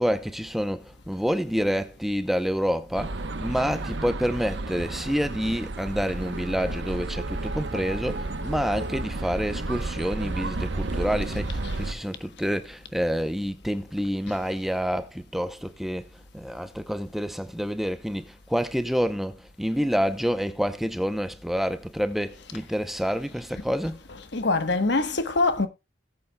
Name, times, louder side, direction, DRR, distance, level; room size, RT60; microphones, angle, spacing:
voice 1, 0.0-24.0, equal, ahead, 0.6 m, -28 dB
sound 1, 2.9-11.9, right 2 dB, 65° right, 1.0 m, -32 dB
voice 2, 24.2-25.7, left 3 dB, 60° left, 1.2 m, -24 dB
18.0 x 8.2 x 2.2 m
head